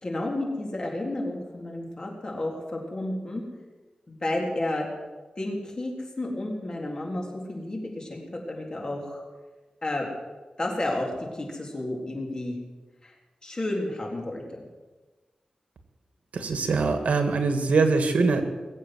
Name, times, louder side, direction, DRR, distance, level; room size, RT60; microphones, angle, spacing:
voice 1, 0.0-3.4 4.1-4.9 5.4-9.2 9.8-10.1 10.6-12.6 13.0-13.1 13.4-14.6, left 1 dB, 35° left, 0 dB, 3.8 m, -31 dB
voice 2, 16.3-18.4, right 4 dB, 85° right, 7 dB, 1.8 m, -23 dB
21.0 x 8.3 x 7.9 m, 1.3 s
wide cardioid pair, 100°, 2 cm